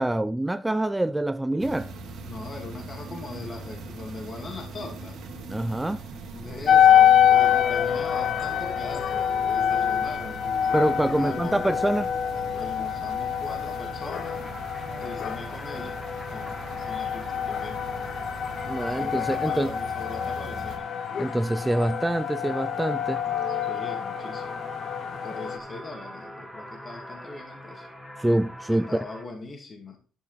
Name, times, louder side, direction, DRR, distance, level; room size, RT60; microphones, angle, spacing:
voice 1, 0.0-1.9 5.5-6.0 10.7-12.1 18.6-19.7 21.2-23.2 28.2-28.9, right 1 dB, 10° right, 0.4 m, -25 dB
sound 1, 1.6-20.8, right 3 dB, 75° right, 2.0 m, -41 dB
voice 2, 2.2-5.2 6.3-10.6 11.2-11.6 12.5-14.4 15.0-16.0 16.3-17.8 18.8-20.9 23.7-24.7 25.1-27.9 28.7-30.0, left 3 dB, 40° left, 2.3 m, -40 dB
sound 2, 6.7-25.6, left 9 dB, 60° left, 0.6 m, -25 dB
sound 3, 14.1-29.2, equal, 15° left, 2.1 m, -43 dB
11.0 x 5.4 x 4.1 m
cardioid pair, 90°, 0 cm